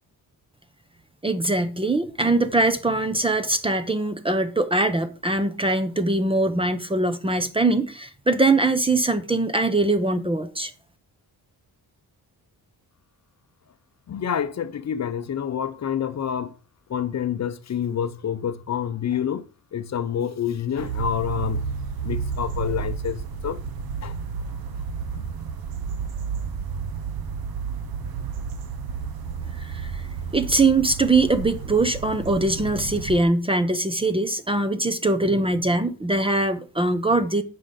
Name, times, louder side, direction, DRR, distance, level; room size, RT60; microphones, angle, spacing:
voice 1, 1.2-10.7 29.7-29.8 30.3-37.4, right 2 dB, 15° right, 0.6 m, -22 dB
voice 2, 14.1-16.5 16.9-19.4 19.7-21.7 22.0-23.6 24.0-24.1 25.1-25.2, left 8 dB, 45° left, 0.6 m, -28 dB
sound 1, 20.8-33.2, right 6 dB, 65° right, 0.9 m, -31 dB
7.5 x 5.8 x 5.1 m
wide cardioid pair, 160°, 39 cm